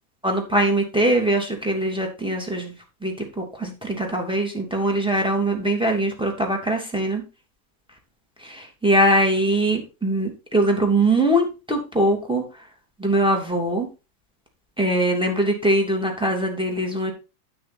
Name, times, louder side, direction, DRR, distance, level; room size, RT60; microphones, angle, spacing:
voice 1, 0.2-2.7 3.0-7.2 8.4-12.4 13.0-13.9 14.8-17.1, right 1 dB, ahead, 1 dB, 2.1 m, -22 dB
12.0 x 6.2 x 4.2 m, 0.29 s
omnidirectional pair, 3.6 m